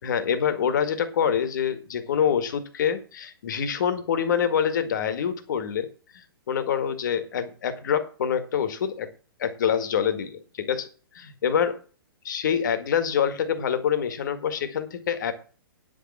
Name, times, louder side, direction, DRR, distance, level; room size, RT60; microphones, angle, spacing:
voice 1, 0.0-5.9 6.5-9.1 9.4-10.9 11.1-11.8 12.2-15.3, left 8 dB, 50° left, 10 dB, 1.8 m, -26 dB
9.7 x 6.6 x 7.3 m, 0.39 s
hypercardioid pair, 170°, 13 cm